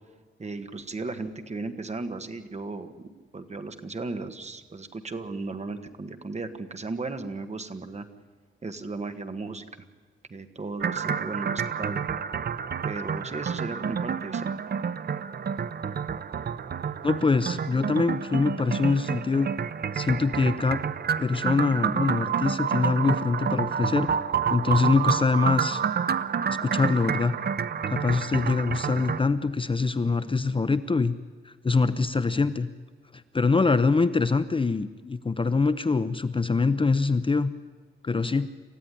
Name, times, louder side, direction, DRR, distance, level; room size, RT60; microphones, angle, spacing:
voice 1, 0.4-3.1 3.3-8.1 8.6-9.6 10.3-12.1 12.8-14.5, right 3 dB, 30° right, 8 dB, 1.5 m, -35 dB
sound 1, 10.8-29.2, right 7 dB, 50° right, 0.6 m, -29 dB
voice 2, 17.0-19.5 19.9-20.8 21.2-24.1 24.5-25.8 26.5-27.3 27.9-31.1 31.5-32.7 33.3-37.5 38.0-38.5, left 4 dB, 25° left, 12 dB, 0.7 m, -24 dB
28.0 x 15.0 x 10.0 m, 1.4 s
wide cardioid pair, 145°, 21 cm